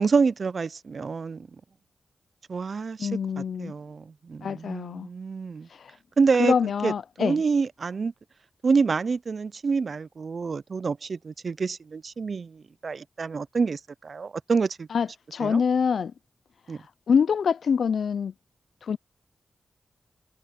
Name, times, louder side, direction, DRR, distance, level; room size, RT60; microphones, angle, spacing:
voice 1, 0.0-1.5 2.5-3.1 3.6-5.7 6.2-6.5 6.8-6.9 7.2-8.1 8.6-14.9 15.4-15.6 16.7-16.8, right 5 dB, 60° right, 0.4 m, -27 dB
voice 2, 3.0-3.7 4.4-5.1 5.7-5.9 6.4-7.4 14.9-16.1 17.1-18.3 18.8-19.0, left 6 dB, 80° left, 0.4 m, -25 dB
cardioid pair, 60°, 0 cm